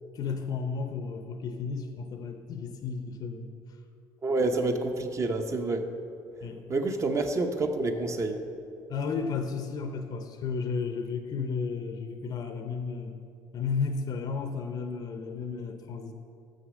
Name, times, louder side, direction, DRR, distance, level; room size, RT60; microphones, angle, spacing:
voice 1, 0.1-3.8 6.4-6.6 8.9-13.2 13.5-16.1, left 5 dB, 50° left, 7 dB, 0.6 m, -33 dB
voice 2, 4.2-5.9 6.7-8.5, right 2 dB, 35° right, 6 dB, 0.7 m, -28 dB
6.4 x 6.2 x 6.3 m, 2.6 s
supercardioid pair, 95°, 9 cm